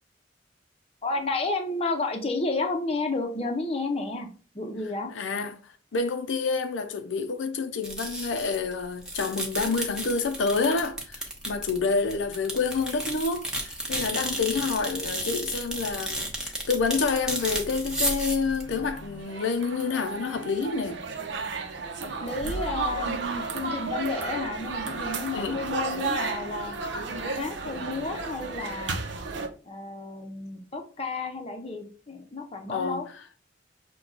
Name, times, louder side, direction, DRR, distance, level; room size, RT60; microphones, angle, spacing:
voice 1, 1.0-4.3 4.5-5.1 22.0-26.7 27.2-29.0 29.6-33.1, left 3 dB, 30° left, 0.6 m, -31 dB
voice 2, 5.1-5.5 5.9-21.0 25.3-25.6 32.7-33.0, left 4 dB, 90° left, 0.5 m, -28 dB
sound 1, 7.8-8.7 9.0-19.2, right 1 dB, 5° right, 0.8 m, -33 dB
sound 2, 18.7-29.5, right 4 dB, 75° right, 0.7 m, -33 dB
5.9 x 2.3 x 3.9 m
head